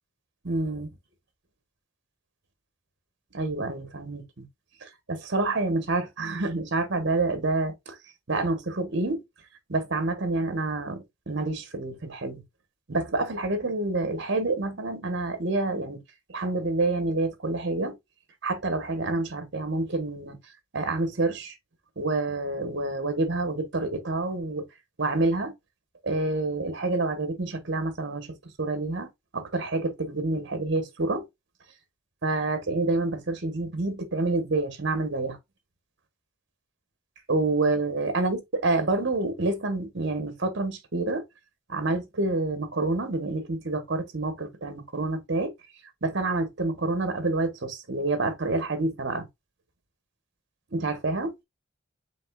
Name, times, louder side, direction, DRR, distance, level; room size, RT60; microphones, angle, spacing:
voice 1, 0.4-0.9 3.3-4.4 4.8-8.0 8.3-9.2 9.7-12.4 12.9-16.0 16.3-18.0 18.4-20.4 20.7-21.5 22.0-24.6 25.0-25.5 26.0-28.3 28.6-31.2 32.2-35.4 37.3-41.2 41.7-45.5 46.0-49.2 50.7-51.3, right 2 dB, 60° right, 1.1 m, -28 dB
5.2 x 3.3 x 2.4 m
head